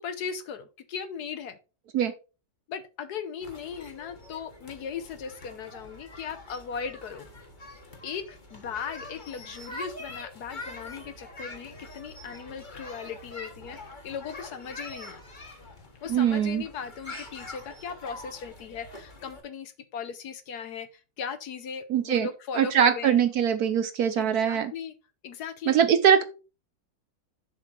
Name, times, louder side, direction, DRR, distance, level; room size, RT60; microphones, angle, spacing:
voice 1, 0.0-1.6 2.7-7.3 8.0-13.8 14.0-15.2 16.0-20.9 21.2-23.2 24.2-24.9 25.2-25.8, left 6 dB, 65° left, 11 dB, 1.2 m, -38 dB
sound 1, 3.4-19.4, left 2 dB, 25° left, 1.6 m, -44 dB
voice 2, 16.1-16.6 21.9-22.3 22.5-24.7 25.7-26.2, right 8 dB, 65° right, 10 dB, 1.1 m, -22 dB
7.2 x 5.6 x 4.3 m, 0.32 s
omnidirectional pair, 2.0 m